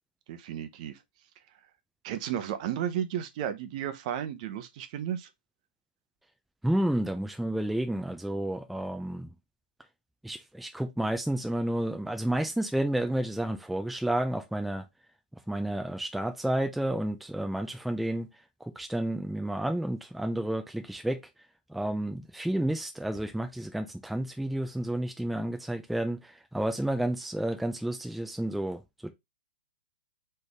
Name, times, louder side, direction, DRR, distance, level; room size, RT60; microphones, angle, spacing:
voice 1, 0.3-1.0 2.0-5.3, right 10 dB, 45° right, 0.8 m, -33 dB
voice 2, 6.6-9.3 10.2-14.9 15.5-18.3 18.6-21.2 21.7-29.1, right 1 dB, ahead, 0.4 m, -31 dB
4.0 x 3.3 x 3.4 m
hypercardioid pair, 135°, 5 cm